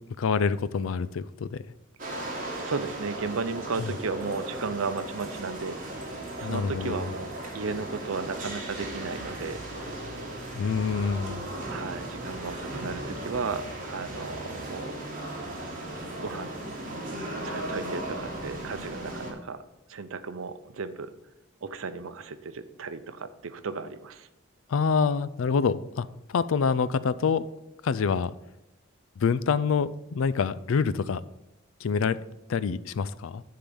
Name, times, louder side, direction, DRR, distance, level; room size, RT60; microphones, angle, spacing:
voice 1, 0.2-1.6 3.8-3.9 6.4-7.1 10.5-11.5 24.7-27.4 27.8-28.3 29.2-31.2 31.8-32.2 32.5-33.4, left 5 dB, 80° left, 0.4 m, -26 dB
sound 1, 2.0-19.3, right 1 dB, 40° right, 1.9 m, -36 dB
voice 2, 2.5-5.9 6.4-9.6 11.7-14.9 16.1-16.5 17.4-19.6 19.9-21.1 21.6-24.3, right 4 dB, 85° right, 0.6 m, -34 dB
10.0 x 3.8 x 6.9 m
head